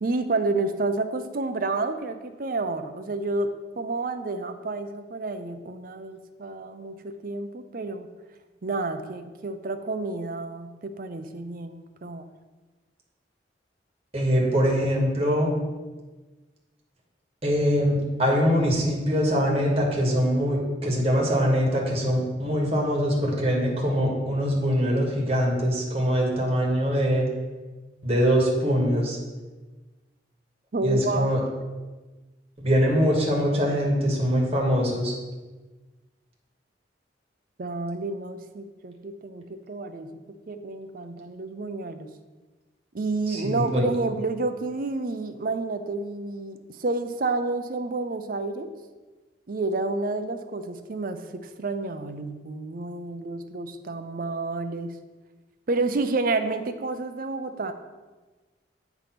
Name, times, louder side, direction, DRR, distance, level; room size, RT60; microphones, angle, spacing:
voice 1, 0.0-8.1 8.6-12.3 30.7-31.3 37.6-40.1 40.5-42.1 42.9-48.7 49.5-54.9 55.7-57.7, right 3 dB, 50° right, 8 dB, 0.5 m, -30 dB
voice 2, 14.1-15.5 17.4-27.3 28.0-29.2 30.8-31.4 32.6-35.1 43.3-43.8, equal, 35° right, -2 dB, 1.5 m, -23 dB
8.3 x 3.5 x 5.9 m, 1.3 s
head